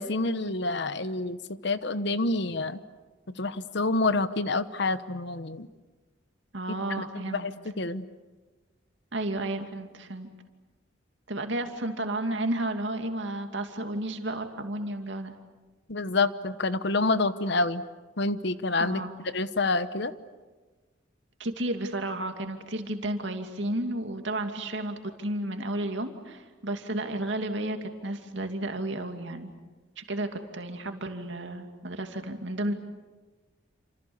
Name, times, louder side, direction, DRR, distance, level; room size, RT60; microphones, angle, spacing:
voice 1, 0.0-2.8 3.4-5.7 7.1-8.1 15.9-17.8 18.2-19.0 19.3-20.1, left 3 dB, 60° left, 13 dB, 1.1 m, -28 dB
voice 2, 6.5-7.5 9.1-10.3 11.3-15.3 18.8-19.1 21.4-29.5 30.0-32.7, right 1 dB, 65° right, 5 dB, 2.6 m, -32 dB
29.0 x 27.0 x 7.2 m, 1.3 s
head